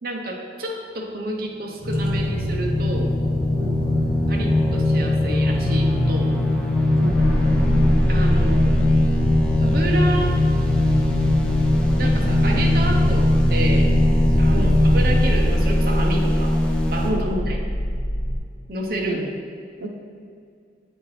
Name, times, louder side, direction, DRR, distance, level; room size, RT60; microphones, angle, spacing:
voice 1, 0.0-3.1 4.3-6.3 8.1-8.7 9.6-10.4 12.0-13.9 14.4-16.6 16.9-17.1 17.5-17.6 18.7-19.2, right 1 dB, 55° right, -1 dB, 0.6 m, -29 dB
sound 1, 1.8-15.2, left 1 dB, 50° left, 0.8 m, -22 dB
sound 2, 1.9-17.1, left 1 dB, 5° left, 0.5 m, -25 dB
sound 3, 7.1-18.4, equal, 75° left, 1.5 m, -23 dB
voice 2, 17.0-17.5 19.0-19.2 19.8-19.9, equal, 85° right, 1 dB, 0.7 m, -28 dB
8.3 x 4.3 x 3.2 m, 2.3 s
head